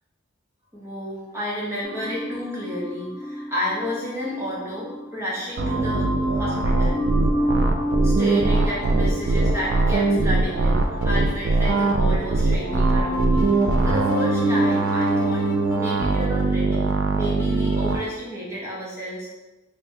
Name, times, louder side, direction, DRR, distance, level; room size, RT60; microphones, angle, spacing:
voice 1, 0.7-7.0 8.0-15.4 15.7-19.3, left 1 dB, 10° right, -5 dB, 0.8 m, -31 dB
sound 1, 1.8-5.1 5.6-12.4 12.7-15.9, equal, 60° left, 1.0 m, -29 dB
sound 2, 5.6-18.0, right 3 dB, 50° right, 0.3 m, -22 dB
sound 3, 7.9-8.0 8.2-10.1 10.4-11.4 11.7-18.2, right 1 dB, 75° left, 0.4 m, -41 dB
3.3 x 2.2 x 4.4 m, 1.1 s
head